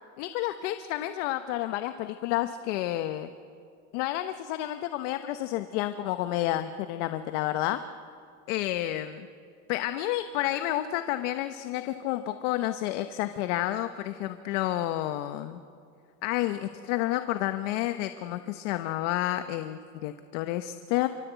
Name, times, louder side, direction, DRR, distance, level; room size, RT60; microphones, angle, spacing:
voice 1, 0.2-3.3 3.9-7.8 8.5-9.3 9.7-15.6 16.2-21.1, left 14 dB, 85° left, 9 dB, 1.1 m, -30 dB
27.5 x 25.0 x 8.2 m, 2.3 s
cardioid pair, 160°, 36 cm